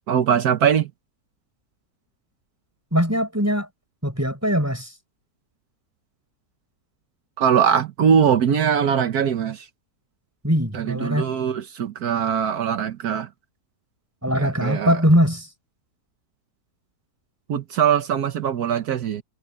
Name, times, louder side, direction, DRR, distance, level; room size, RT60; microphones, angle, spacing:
voice 1, 0.1-0.9 7.4-9.7 10.7-13.3 14.3-15.0 17.5-19.2, right 8 dB, 80° right, 1.5 m, -21 dB
voice 2, 2.9-3.7 4.0-4.9 10.4-11.3 14.2-15.5, equal, 10° right, 6.7 m, -21 dB
omnidirectional pair, 1.6 m